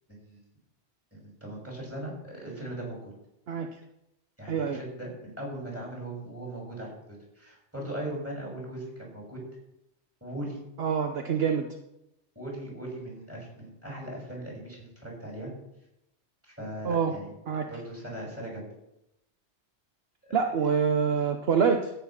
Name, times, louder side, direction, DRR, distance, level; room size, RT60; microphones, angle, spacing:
voice 1, 0.1-0.4 1.1-3.1 4.4-9.4 10.2-10.6 12.3-15.5 16.4-17.3 17.7-18.6 20.3-20.4, right 1 dB, 10° right, -2 dB, 6.5 m, -39 dB
voice 2, 4.5-4.8 10.8-11.7 16.8-17.1 17.5-17.7 20.3-21.9, right 6 dB, 60° right, 4 dB, 1.1 m, -26 dB
14.0 x 8.9 x 5.9 m, 0.85 s
omnidirectional pair, 1.2 m